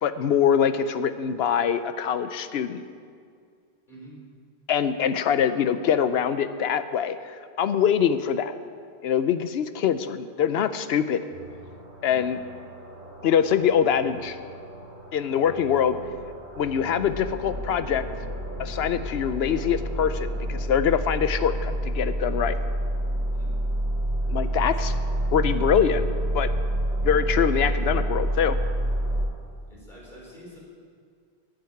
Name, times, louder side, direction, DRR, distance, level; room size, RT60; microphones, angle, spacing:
voice 1, 0.0-2.8 4.7-8.5 9.0-11.2 12.0-12.4 13.2-14.4 15.1-16.0 16.6-18.0 18.6-22.6 24.3-24.9 25.3-26.0 26.3-26.5 27.0-28.6, left 8 dB, 75° left, 12 dB, 0.8 m, -24 dB
sound 1, 11.3-29.3, right 1 dB, 85° right, 2.4 m, -29 dB
voice 2, 12.0-12.3 23.3-23.5 29.7-30.6, right 1 dB, 50° left, -4 dB, 3.9 m, -46 dB
10.5 x 7.9 x 9.3 m, 2.2 s
omnidirectional pair, 1.1 m